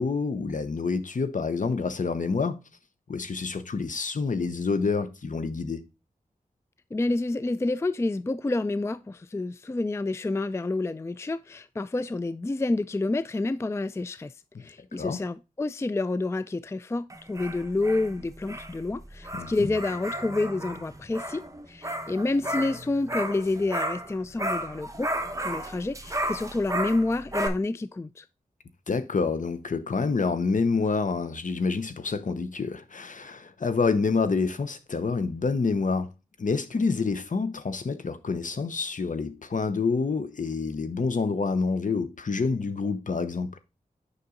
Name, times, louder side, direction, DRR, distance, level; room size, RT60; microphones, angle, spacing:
voice 1, 0.0-2.6 3.1-5.8 14.9-15.2 19.3-19.7 28.9-36.1 36.4-43.5, left 4 dB, 60° left, 0.9 m, -27 dB
voice 2, 6.9-14.3 14.6-25.1 25.4-28.3, left 2 dB, 20° left, 0.3 m, -29 dB
sound 1, 17.1-24.1 24.4-27.5, right 1 dB, 20° right, 1.1 m, -33 dB
6.9 x 5.4 x 3.8 m
cardioid pair, 50°, 15 cm